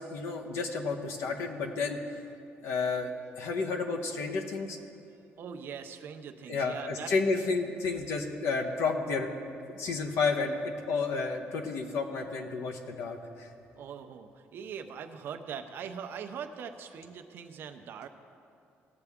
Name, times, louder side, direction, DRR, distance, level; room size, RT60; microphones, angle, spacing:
voice 1, 0.0-2.0 2.6-4.8 6.5-9.3 9.7-13.5, left 4 dB, 90° left, 4 dB, 1.0 m, -31 dB
voice 2, 5.4-7.1 13.8-18.1, right 7 dB, 55° right, 6 dB, 0.6 m, -41 dB
17.5 x 6.8 x 3.6 m, 2.6 s
cardioid pair, 170°, 4 cm